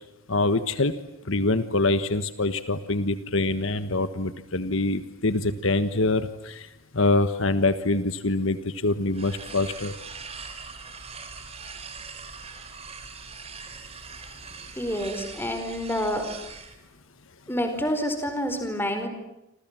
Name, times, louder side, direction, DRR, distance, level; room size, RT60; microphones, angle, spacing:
voice 1, 0.3-0.9 1.3-6.7 6.9-9.9, left 2 dB, 65° left, 11 dB, 1.4 m, -25 dB
sound 1, 9.1-16.8, right 5 dB, 30° right, 3.7 m, -41 dB
voice 2, 14.8-16.2 17.5-19.1, equal, 10° left, 7 dB, 4.7 m, -28 dB
29.0 x 27.0 x 7.6 m, 0.92 s
head